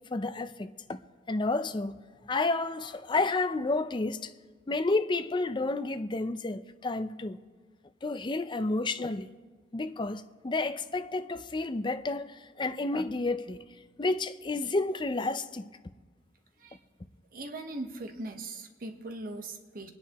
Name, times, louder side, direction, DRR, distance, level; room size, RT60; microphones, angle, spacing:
voice 1, 0.1-1.0 1.3-2.0 2.3-4.3 4.7-7.4 8.0-9.3 9.7-13.6 14.0-15.7, left 3 dB, 25° left, 0.5 m, -30 dB
voice 2, 17.3-19.9, right 2 dB, 55° right, 1.0 m, -40 dB
25.5 x 10.0 x 3.0 m
head